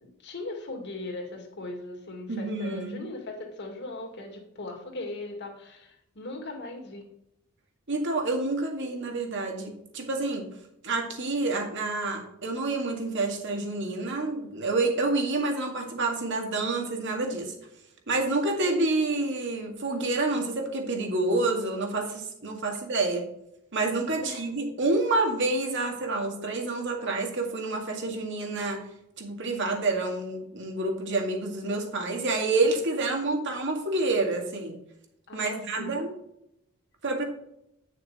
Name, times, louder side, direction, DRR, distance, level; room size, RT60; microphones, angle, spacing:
voice 1, 0.0-7.0 24.2-24.5 35.3-36.0, left 2 dB, 55° left, 2 dB, 2.3 m, -39 dB
voice 2, 2.3-3.1 7.9-10.5 10.8-17.5 18.1-23.3 23.7-28.8 29.2-34.8 35.3-36.1 37.0-37.2, right 2 dB, 60° right, 2 dB, 2.1 m, -28 dB
9.4 x 6.6 x 4.3 m, 0.79 s
head